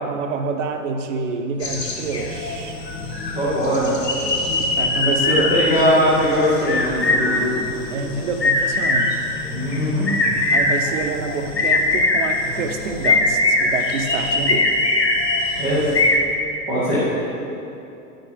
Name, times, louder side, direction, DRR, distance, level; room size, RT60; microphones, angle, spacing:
voice 1, 0.0-2.7 4.6-5.5 7.9-9.2 10.5-14.8, right 4 dB, 50° right, 6 dB, 0.9 m, -27 dB
sound 1, 1.6-16.2, left 2 dB, 85° left, 1.1 m, -22 dB
voice 2, 3.3-3.9 5.0-7.6 9.5-10.1 15.6-15.9 16.7-17.0, equal, ahead, -13 dB, 0.3 m, -20 dB
9.5 x 5.8 x 5.2 m, 2.8 s
figure-of-eight pair, 105°, 48 cm